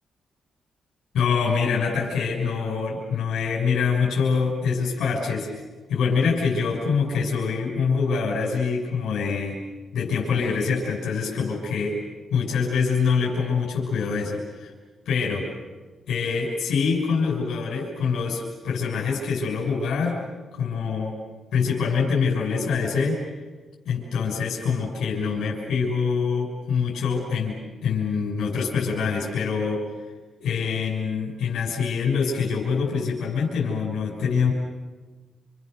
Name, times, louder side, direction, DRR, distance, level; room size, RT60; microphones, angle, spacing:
voice 1, 1.1-5.5 5.9-9.6 9.9-12.0 12.3-14.7 15.0-15.5 16.1-20.2 20.5-21.2 21.5-23.2 23.8-29.9 30.4-34.5, left 5 dB, 85° left, -3 dB, 6.4 m, -25 dB
29.5 x 29.0 x 6.8 m, 1.3 s
wide cardioid pair, 170°, 0 cm